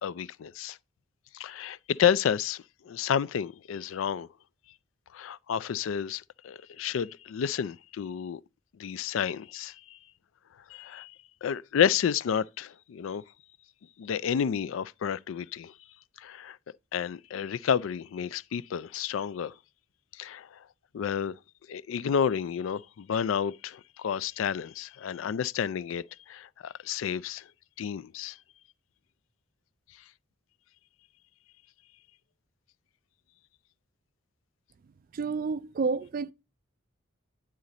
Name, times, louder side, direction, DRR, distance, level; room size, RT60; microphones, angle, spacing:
voice 1, 0.0-0.8 1.3-4.3 5.1-8.4 8.8-10.0 10.7-11.2 11.4-13.2 14.0-15.7 16.2-16.6 16.9-19.6 20.1-20.7 20.9-21.4 21.7-27.5 27.8-28.4, left 8 dB, 80° left, 0.3 m, -30 dB
voice 2, 35.1-36.3, right 4 dB, 45° right, 0.3 m, -30 dB
9.7 x 3.8 x 4.0 m
head